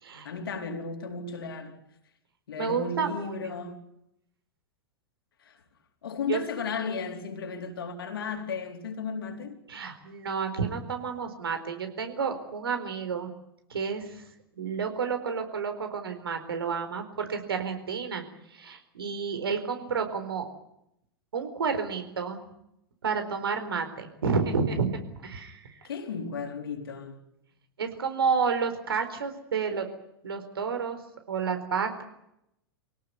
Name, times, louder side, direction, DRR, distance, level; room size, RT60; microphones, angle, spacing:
voice 1, 0.2-1.8 2.5-3.9 5.4-5.6 6.0-9.6 25.8-27.2, left 5 dB, 70° left, 4.2 m, -34 dB
voice 2, 2.6-3.7 6.3-6.4 9.7-13.3 13.7-14.2 14.6-18.2 18.5-20.5 21.3-22.4 23.0-24.9 25.2-25.8 27.8-29.8 30.2-31.0 31.3-32.0, right 5 dB, 70° right, 4.4 m, -30 dB
26.0 x 18.0 x 9.6 m
figure-of-eight pair, 95°, 13 cm